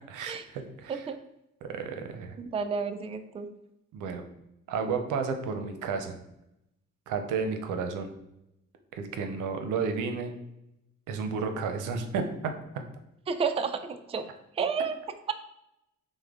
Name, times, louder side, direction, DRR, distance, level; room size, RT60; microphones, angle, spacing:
voice 1, 0.1-1.1 1.6-2.4 3.9-4.2 4.7-6.2 7.1-8.1 8.9-10.3 11.1-12.5, right 5 dB, 90° right, 6 dB, 0.7 m, -32 dB
voice 2, 2.4-3.5 13.3-14.2 14.6-15.0, right 5 dB, 20° right, 8 dB, 0.4 m, -31 dB
6.2 x 2.1 x 3.6 m, 0.85 s
cardioid pair, 90°, 30 cm